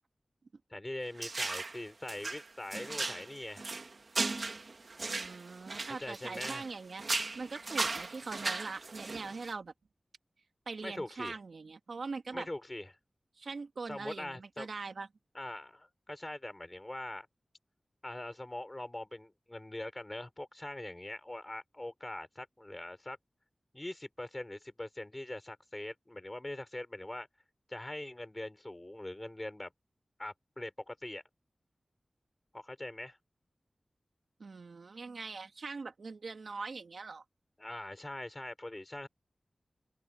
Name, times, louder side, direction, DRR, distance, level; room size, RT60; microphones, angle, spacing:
voice 1, 0.7-3.7 5.9-6.6 10.8-11.4 12.3-12.9 13.9-14.7 15.3-17.3 18.0-23.2 23.7-27.3 27.7-29.7 30.2-31.2 32.5-33.2 37.6-39.1, left 1 dB, 25° left, 6.5 m, -42 dB
sound 1, 1.2-1.8 2.1-6.7 7.0-9.5, right 3 dB, 60° right, 2.2 m, -37 dB
voice 2, 5.1-9.7 10.7-12.5 13.4-15.1 34.4-37.2, right 4 dB, 85° right, 2.1 m, -42 dB
open air
wide cardioid pair, 80°, 0 cm